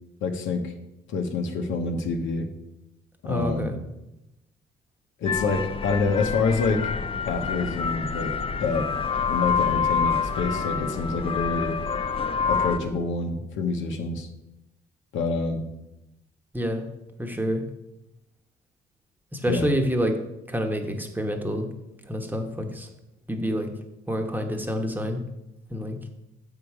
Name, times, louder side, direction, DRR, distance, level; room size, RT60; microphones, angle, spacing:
voice 1, 0.2-0.7 1.1-2.5 3.2-3.7 5.2-6.9 7.2-8.3 8.6-8.9 9.3-11.8 12.5-14.3 15.1-15.6 19.5-19.7, left 4 dB, 80° left, 4 dB, 1.0 m, -27 dB
voice 2, 3.2-3.8 16.5-16.8 17.2-17.6 19.3-20.2 20.5-21.7 22.1-22.9 23.3-23.7 24.1-25.2 25.7-26.0, equal, 10° right, 4 dB, 1.1 m, -27 dB
sound 1, 5.3-12.8, left 6 dB, 30° left, 0.5 m, -27 dB
7.2 x 5.8 x 4.8 m, 0.91 s
cardioid pair, 90°, 20 cm